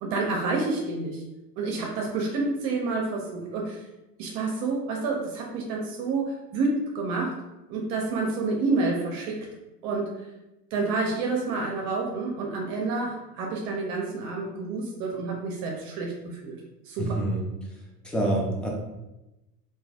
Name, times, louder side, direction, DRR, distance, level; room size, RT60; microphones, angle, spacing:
voice 1, 0.0-1.2 1.6-3.8 4.2-7.4 7.7-9.4 9.8-10.2 10.7-16.6 16.9-17.2, right 3 dB, 55° right, 0 dB, 0.7 m, -29 dB
voice 2, 17.0-17.4 18.0-18.7, right 1 dB, ahead, -2 dB, 0.4 m, -26 dB
3.2 x 2.3 x 2.4 m, 0.98 s
hypercardioid pair, 100°, 46 cm